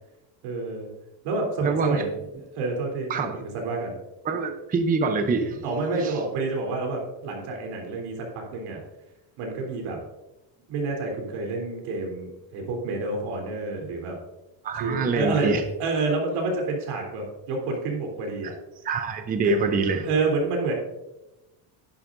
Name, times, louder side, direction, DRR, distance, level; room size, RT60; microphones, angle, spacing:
voice 1, 0.4-0.9 1.2-2.2 2.5-3.9 5.6-8.8 9.4-10.0 10.7-14.1 14.8-15.5 15.8-18.5 19.4-19.6 20.0-20.7, right 3 dB, 85° right, 1 dB, 3.5 m, -28 dB
voice 2, 1.6-2.0 3.1-3.4 4.2-5.6 6.0-6.1 14.6-15.6 18.8-20.1, right 4 dB, 20° right, 7 dB, 0.6 m, -25 dB
11.0 x 11.0 x 2.6 m, 0.97 s
cardioid pair, 165°, 48 cm